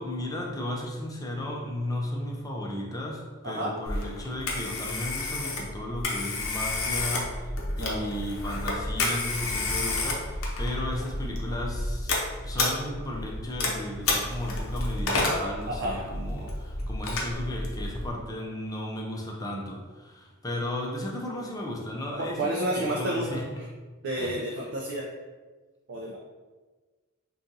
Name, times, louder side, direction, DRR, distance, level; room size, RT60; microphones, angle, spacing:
voice 1, 0.0-23.6 24.2-24.4, left 1 dB, 15° left, -1 dB, 0.5 m, -35 dB
Telephone, 3.9-18.1, left 2 dB, 70° left, 0.6 m, -30 dB
voice 2, 15.7-16.1 22.2-23.7 24.0-25.1 25.9-26.2, right 1 dB, 55° right, -2 dB, 0.4 m, -30 dB
2.6 x 2.3 x 3.8 m, 1.3 s
head